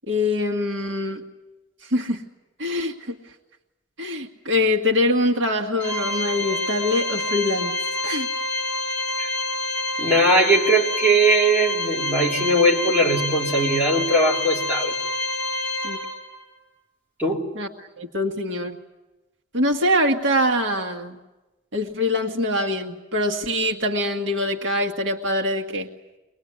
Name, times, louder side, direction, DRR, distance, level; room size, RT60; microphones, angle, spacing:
voice 1, 0.1-1.2 1.8-2.2 2.6-3.2 4.0-7.7 8.0-8.3 15.8-16.0 17.6-17.7 18.0-18.8 19.5-21.2 21.7-25.9, left 1 dB, 75° right, 3 dB, 1.7 m, -24 dB
Organ, 5.8-16.5, left 2 dB, 5° left, 6.0 m, -27 dB
voice 2, 10.0-15.0 17.2-17.5, right 1 dB, 10° right, -4 dB, 3.3 m, -20 dB
24.0 x 20.5 x 9.5 m, 1.1 s
head